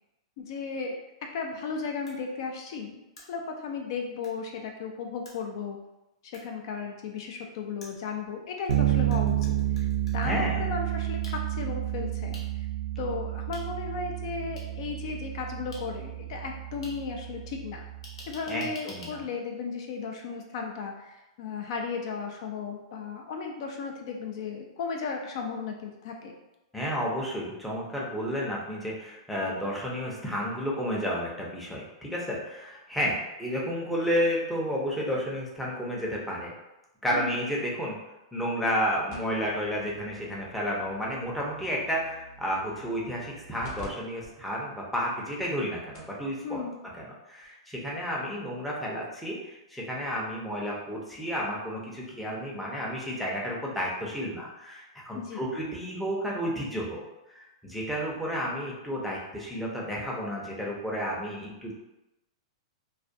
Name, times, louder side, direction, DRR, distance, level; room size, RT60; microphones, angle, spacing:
voice 1, 0.4-1.0 1.3-5.8 6.3-9.9 10.1-12.4 13.0-17.8 18.3-26.3 37.1-37.5 46.4-46.8 55.1-55.4, left 5 dB, 55° left, 2 dB, 0.3 m, -35 dB
sound 1, 2.1-2.2 3.2-3.3 4.2-4.3 5.3-5.4 6.3-6.4 7.8-8.8 9.1-10.3 11.2-11.3 12.3-12.4 13.5-13.6 14.6-14.7 15.7-15.8 16.8-16.9 18.0-19.1, left 1 dB, 80° left, 0.8 m, -47 dB
Bass guitar, 8.7-18.3, right 13 dB, 80° right, 0.3 m, -30 dB
voice 2, 10.2-10.6 18.5-19.2 26.7-36.5 37.0-38.0 38.3-46.6 47.0-57.0 57.3-61.7, equal, ahead, -5 dB, 0.5 m, -31 dB
sound 2, 39.1-43.9 44.2-44.3 45.0-45.1 45.6-45.7 45.9-46.2 47.4-47.5, equal, 40° left, 0.8 m, -48 dB
2.3 x 2.1 x 2.6 m, 0.95 s
hypercardioid pair, 135°, 3 cm